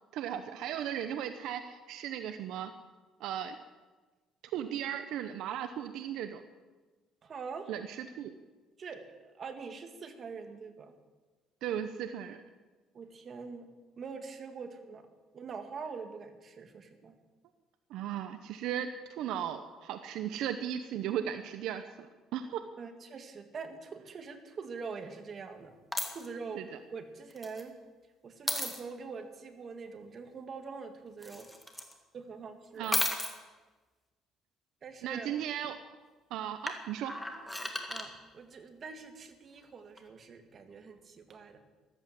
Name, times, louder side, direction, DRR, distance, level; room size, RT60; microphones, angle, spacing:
voice 1, 0.1-2.7 3.2-3.6 4.5-6.4 7.7-8.3 11.6-12.4 17.9-22.1 22.3-22.6 26.5-26.7 32.8-33.0 35.0-35.8 36.3-37.2, right 10 dB, 75° right, 9 dB, 0.9 m, -36 dB
voice 2, 7.2-7.7 8.8-10.9 12.9-13.7 14.0-15.1 15.3-17.2 22.8-25.7 26.0-27.7 28.2-31.5 32.1-32.9 34.8-35.3 37.9-41.6, right 5 dB, 40° right, 7 dB, 2.0 m, -44 dB
sound 1, 25.9-26.3 27.3-27.6 28.5-28.8 31.2-31.9 32.8-33.3 36.7-38.0 40.0-40.1, left 1 dB, 5° left, 2.0 m, -34 dB
14.5 x 13.0 x 7.6 m, 1.3 s
cardioid pair, 135°, 0 cm